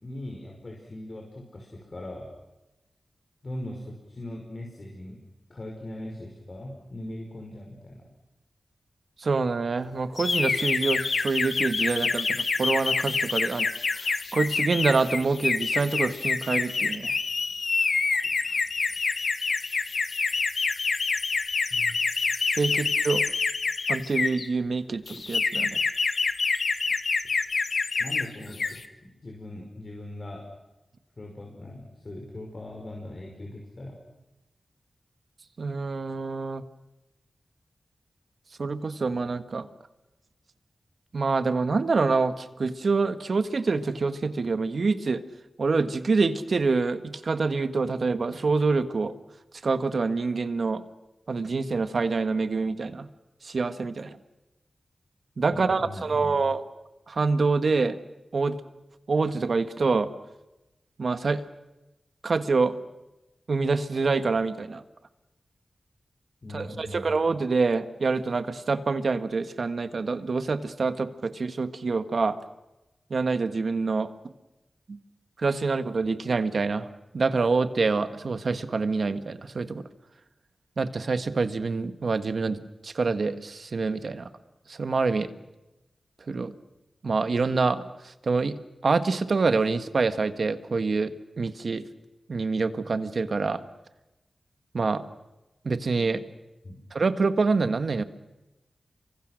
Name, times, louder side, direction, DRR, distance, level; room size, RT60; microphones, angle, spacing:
voice 1, 0.0-2.3 3.4-5.2 5.5-8.0 21.7-22.1 28.0-30.5 31.2-34.0 55.5-56.4 66.4-67.2 96.6-96.8, left 1 dB, 45° left, 0 dB, 5.3 m, -40 dB
voice 2, 9.2-13.7 14.3-17.1 22.6-23.2 23.9-25.8 35.6-36.6 38.6-39.7 41.1-45.2 45.6-49.1 49.6-50.8 51.3-53.1 53.4-54.2 55.4-56.6 57.1-58.0 58.3-58.6 59.1-60.1 61.0-61.4 62.2-62.7 63.5-64.8 66.5-72.3 73.1-74.1 74.9-75.0 75.4-76.9 77.1-79.8 80.8-82.6 82.8-84.3 84.7-85.3 86.3-86.5 87.0-88.5 88.8-91.9 92.3-93.6 94.7-95.0 95.6-96.2 96.9-98.0, right 4 dB, 65° right, 10 dB, 1.5 m, -26 dB
sound 1, 10.2-24.5 25.1-28.3 28.5-28.8, left 4 dB, 70° left, 1.5 m, -27 dB
29.5 x 24.5 x 6.5 m, 1.0 s
wide cardioid pair, 65°, 0 cm